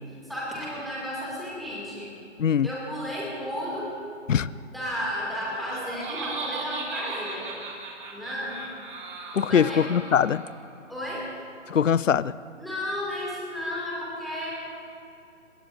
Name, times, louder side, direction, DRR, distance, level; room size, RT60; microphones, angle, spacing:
voice 1, 0.2-2.1 2.6-3.9 4.7-7.5 8.1-8.6 9.5-9.9 10.9-11.3 12.6-14.5, equal, ahead, -7 dB, 2.3 m, -33 dB
Laughter, 5.4-10.6, right 3 dB, 35° right, 2.8 m, -37 dB
voice 2, 9.3-10.4 11.7-12.3, left 8 dB, 75° left, 19 dB, 0.6 m, -22 dB
26.5 x 21.0 x 2.6 m, 2.5 s
figure-of-eight pair, 150°, 39 cm